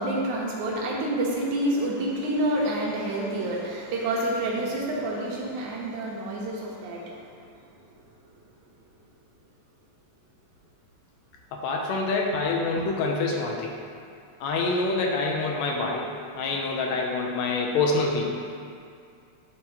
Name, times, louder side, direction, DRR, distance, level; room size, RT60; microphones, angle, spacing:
voice 1, 0.0-7.3, right 1 dB, 85° right, -4 dB, 2.6 m, -28 dB
voice 2, 11.5-13.8 14.4-18.3, left 3 dB, 75° left, 0 dB, 1.8 m, -26 dB
10.5 x 4.7 x 2.9 m, 2.4 s
omnidirectional pair, 3.3 m